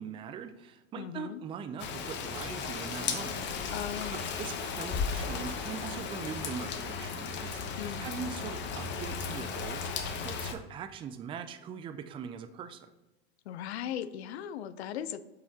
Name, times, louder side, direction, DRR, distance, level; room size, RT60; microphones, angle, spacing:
voice 1, 0.0-3.4 4.1-12.9, right 7 dB, 15° right, 10 dB, 0.3 m, -42 dB
voice 2, 1.0-1.4 3.7-4.4 7.8-8.1 13.5-15.2, left 10 dB, 90° left, 15 dB, 0.5 m, -38 dB
Rain, 1.8-10.5, left 5 dB, 35° left, 0.8 m, -35 dB
7.6 x 5.7 x 2.8 m, 1.1 s
supercardioid pair, 120°, 32 cm